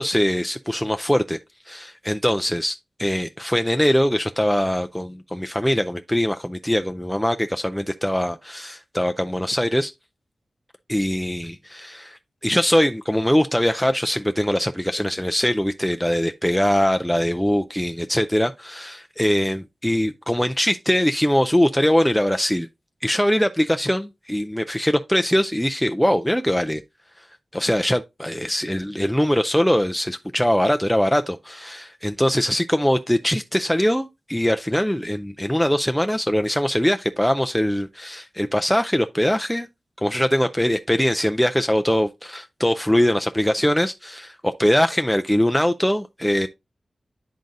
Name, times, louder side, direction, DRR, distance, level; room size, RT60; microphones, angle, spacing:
voice 1, 0.0-1.4 1.7-9.9 10.9-22.7 23.0-26.8 27.5-39.7 40.0-46.5, equal, 5° left, 0.3 m, -22 dB
10.5 x 3.9 x 2.5 m
wide cardioid pair, 90°, 0 cm